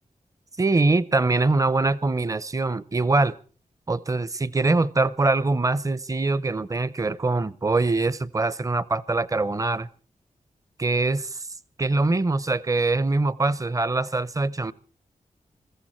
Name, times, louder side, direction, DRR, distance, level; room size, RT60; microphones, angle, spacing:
voice 1, 0.6-3.4 3.9-9.9 10.8-11.5 11.8-14.7, right 3 dB, 25° right, 19 dB, 0.7 m, -23 dB
21.5 x 15.0 x 4.4 m, 0.39 s
wide cardioid pair, 120°, 13 cm